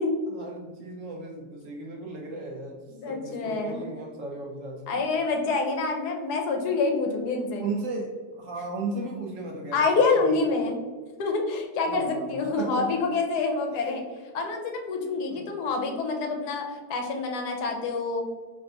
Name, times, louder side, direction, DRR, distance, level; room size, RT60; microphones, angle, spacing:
voice 1, 0.3-2.8 3.1-5.0 7.6-10.4 11.8-12.9 13.7-14.0 15.3-15.5, right 3 dB, 60° right, -1 dB, 0.9 m, -36 dB
voice 2, 2.9-3.8 4.9-7.6 9.7-10.8 11.2-14.0 14.3-16.6 16.9-18.2, left 3 dB, 75° left, 3 dB, 1.2 m, -27 dB
5.5 x 3.3 x 2.6 m, 1.5 s
omnidirectional pair, 1.8 m